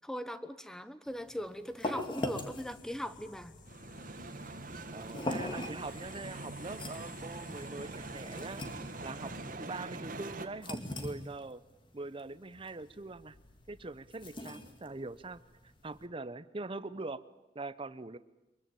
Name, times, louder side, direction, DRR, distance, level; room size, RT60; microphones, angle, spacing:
voice 1, 0.0-3.6, equal, 5° left, 12 dB, 1.0 m, -40 dB
sound 1, 1.1-16.1, left 1 dB, 30° left, 2.3 m, -43 dB
sound 2, 2.1-9.6, left 4 dB, 50° left, 1.6 m, -56 dB
sound 3, 3.7-10.5, right 2 dB, 50° right, 1.7 m, -44 dB
voice 2, 4.9-8.6 9.0-11.6 11.9-13.3 13.7-15.4 15.8-17.2 17.5-18.2, right 3 dB, 30° right, 15 dB, 0.8 m, -43 dB
23.5 x 22.5 x 9.0 m, 0.97 s
head